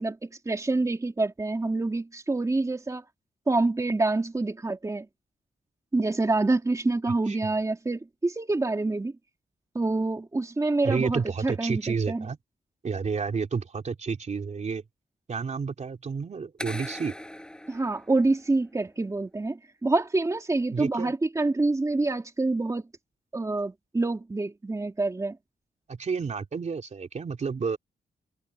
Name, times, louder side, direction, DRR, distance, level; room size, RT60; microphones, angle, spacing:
voice 1, 0.0-3.0 3.5-5.1 5.9-9.1 9.7-12.3 17.7-22.8 23.3-25.4, right 2 dB, 20° right, 2.8 m, -27 dB
voice 2, 10.8-12.4 12.8-14.8 15.3-17.1 20.7-21.1 25.9-27.8, right 5 dB, 45° right, 3.3 m, -30 dB
sound 1, 16.6-18.7, left 1 dB, 5° left, 5.1 m, -40 dB
wide cardioid pair, 155°, 16 cm